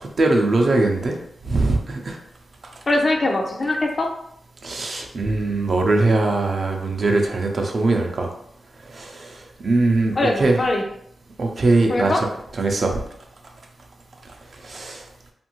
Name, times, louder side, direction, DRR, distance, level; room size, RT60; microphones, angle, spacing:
voice 1, 0.0-1.2 1.4-2.2 4.6-8.3 8.9-10.6 11.4-12.3 12.6-13.0 14.6-15.0, right 2 dB, 55° right, 2 dB, 0.5 m, -21 dB
voice 2, 2.9-4.1 10.2-10.8 11.9-12.2, left 2 dB, 40° left, 2 dB, 0.4 m, -21 dB
2.6 x 2.5 x 2.9 m, 0.73 s
cardioid pair, 80°, 0 cm